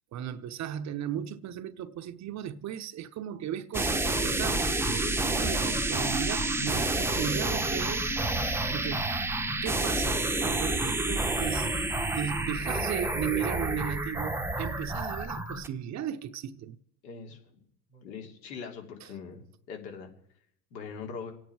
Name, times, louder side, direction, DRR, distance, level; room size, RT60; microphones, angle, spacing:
voice 1, 0.1-8.0 8.4-9.3 9.6-11.7 12.1-16.8 19.0-19.1, right 9 dB, 35° right, 0.8 m, -36 dB
sound 1, 3.7-15.7, right 2 dB, 5° right, 0.8 m, -29 dB
voice 2, 17.0-17.6 17.9-20.1 20.7-21.3, left 5 dB, 85° left, 3.1 m, -42 dB
27.5 x 9.4 x 4.7 m
supercardioid pair, 105°, 50 cm